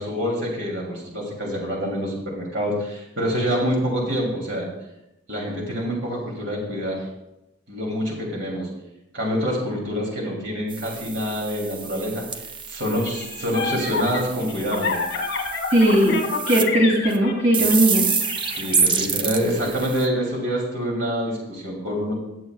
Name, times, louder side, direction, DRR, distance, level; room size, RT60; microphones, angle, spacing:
voice 1, 0.0-4.7 5.3-7.1 7.7-8.7 9.1-12.2 12.7-15.0 18.5-22.1, equal, 70° right, -2 dB, 2.9 m, -26 dB
sound 1, 10.7-16.6 17.1-17.2 17.5-20.1, right 6 dB, 25° right, 0.6 m, -28 dB
sound 2, 13.0-18.8, left 4 dB, 60° left, 2.0 m, -29 dB
voice 2, 15.7-16.2 16.5-18.1, right 1 dB, 90° right, -1 dB, 2.5 m, -18 dB
17.0 x 7.3 x 2.4 m, 0.92 s
head